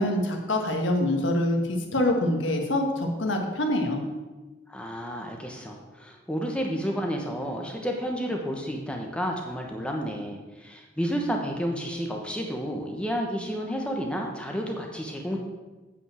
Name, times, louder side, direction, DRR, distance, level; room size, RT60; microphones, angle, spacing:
voice 1, 0.0-4.0, left 1 dB, 80° left, 2 dB, 1.5 m, -25 dB
voice 2, 4.7-15.4, equal, 5° left, 1 dB, 1.0 m, -31 dB
8.4 x 5.3 x 7.5 m, 1.2 s
head